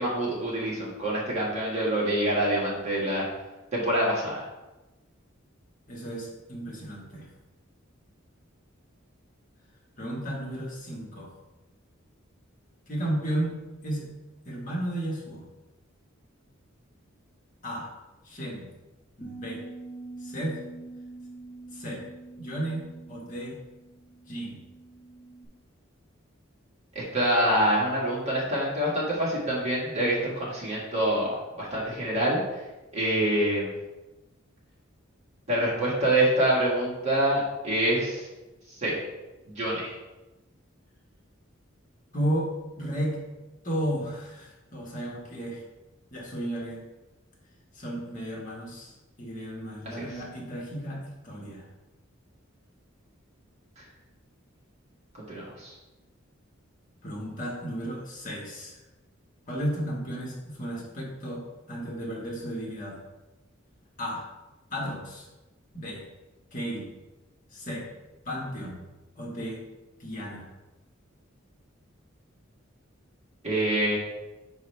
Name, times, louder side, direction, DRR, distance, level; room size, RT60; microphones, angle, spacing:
voice 1, 0.0-3.3 3.7-4.4 27.0-32.4 32.9-33.7 35.5-38.3 38.8-39.0 39.5-39.9 50.0-50.1 55.3-55.7 73.4-74.0, right 1 dB, 35° right, -5 dB, 1.8 m, -26 dB
voice 2, 5.9-7.3 10.0-11.3 12.9-13.6 13.8-14.1 14.4-15.4 17.6-17.9 18.2-18.7 19.2-19.6 20.2-20.6 21.7-22.0 22.4-23.6 24.3-24.6 42.1-42.5 42.8-43.2 43.6-45.6 46.1-46.8 47.7-51.7 57.0-58.8 59.5-61.4 61.7-63.0 64.0-64.3 64.7-65.3 65.7-66.0 66.5-66.9 67.5-67.9 68.2-68.8 69.1-69.6 70.0-70.5, right 1 dB, 40° left, -4 dB, 1.5 m, -33 dB
Bass guitar, 19.2-25.5, right 3 dB, 15° left, 1.2 m, -45 dB
5.7 x 5.4 x 3.3 m, 1.1 s
head